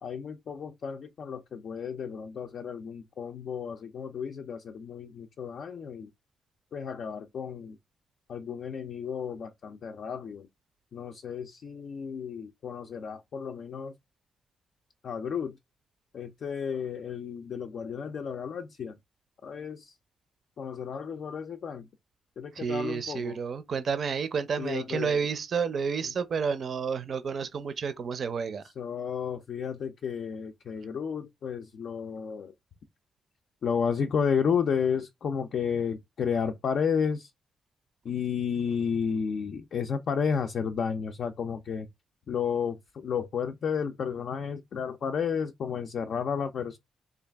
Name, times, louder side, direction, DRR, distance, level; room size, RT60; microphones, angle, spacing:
voice 1, 0.0-6.1 6.7-7.8 8.3-10.5 10.9-13.9 15.0-15.5 16.1-18.9 19.4-19.9 20.6-21.9 22.4-23.4 24.6-25.2 28.8-32.5 33.6-37.3 38.0-41.9 42.3-46.8, left 6 dB, 55° left, 0.4 m, -32 dB
voice 2, 22.5-28.6, right 6 dB, 45° right, 0.5 m, -30 dB
3.8 x 2.3 x 3.3 m
wide cardioid pair, 155°, 0 cm